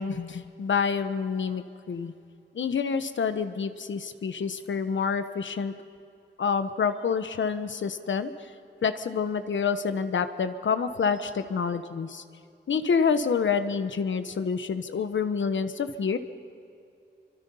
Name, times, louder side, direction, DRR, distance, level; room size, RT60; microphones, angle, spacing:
voice 1, 0.0-2.1 2.5-5.7 6.4-8.3 8.8-12.2 12.7-16.2, left 6 dB, 85° left, 10 dB, 1.2 m, -27 dB
27.5 x 25.0 x 5.6 m, 2.5 s
wide cardioid pair, 110°, 19 cm